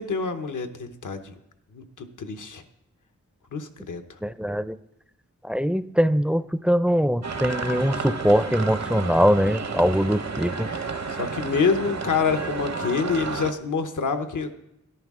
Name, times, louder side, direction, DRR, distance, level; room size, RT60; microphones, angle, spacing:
voice 1, 0.0-1.3 1.7-2.6 3.5-4.2 11.1-14.6, left 5 dB, 80° left, 7 dB, 0.9 m, -27 dB
voice 2, 4.2-4.8 5.4-10.7, equal, 5° right, 15 dB, 0.4 m, -22 dB
sound 1, 7.2-13.5, right 4 dB, 60° right, 0.8 m, -31 dB
13.0 x 11.0 x 3.6 m, 0.83 s
cardioid pair, 40°, 30 cm